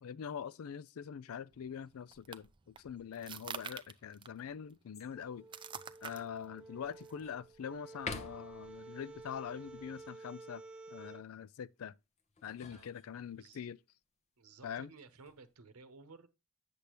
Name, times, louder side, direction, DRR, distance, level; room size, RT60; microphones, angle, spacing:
voice 1, 0.0-5.5 6.0-10.6 10.9-11.9 12.4-13.8 14.6-14.9, left 8 dB, 70° left, 0.4 m, -44 dB
sound 1, 1.5-10.1, right 7 dB, 20° right, 0.4 m, -51 dB
sound 2, 4.9-5.4 6.0-6.1 6.6-7.4 7.9-8.7 12.2-13.6 14.9-15.5, left 4 dB, 30° left, 0.8 m, -47 dB
sound 3, 5.1-11.2, right 3 dB, 5° right, 0.7 m, -52 dB
voice 2, 13.3-13.7 14.4-16.3, right 4 dB, 85° right, 0.9 m, -56 dB
8.3 x 6.7 x 3.0 m
head